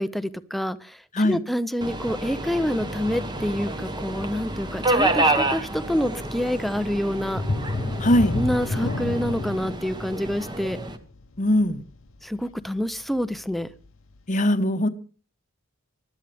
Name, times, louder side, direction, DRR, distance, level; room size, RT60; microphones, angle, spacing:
voice 1, 0.0-7.4 8.3-10.8 12.2-13.7, equal, ahead, 0.5 m, -27 dB
Subway metro underground, 1.8-11.0, right 2 dB, 20° right, 1.1 m, -29 dB
sound 1, 7.3-12.8 13.2-13.4 13.9-14.0, left 2 dB, 65° left, 0.9 m, -30 dB
voice 2, 8.0-8.3 11.4-11.8 14.3-14.9, left 1 dB, 35° left, 1.0 m, -20 dB
20.0 x 12.5 x 3.4 m
head